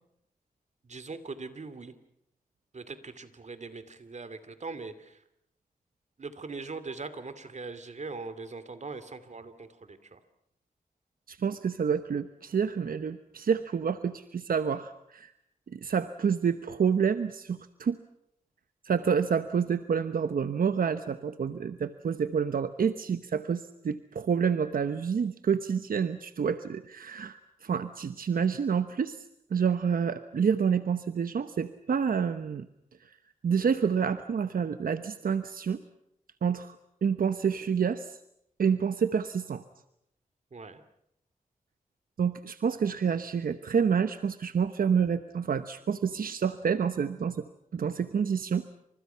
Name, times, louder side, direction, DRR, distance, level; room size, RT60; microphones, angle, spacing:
voice 1, 0.8-1.9 2.7-5.2 6.2-10.2 40.5-40.8, right 4 dB, 55° right, 12 dB, 2.7 m, -41 dB
voice 2, 11.3-15.3 15.7-18.0 18.8-29.2 29.5-32.7 33.0-33.1 33.4-35.8 36.4-36.8 37.0-38.2 38.6-39.6 42.2-47.4 47.7-48.6, right 6 dB, 85° right, 11 dB, 1.0 m, -28 dB
29.0 x 26.5 x 5.8 m, 0.75 s
wide cardioid pair, 100°, 14 cm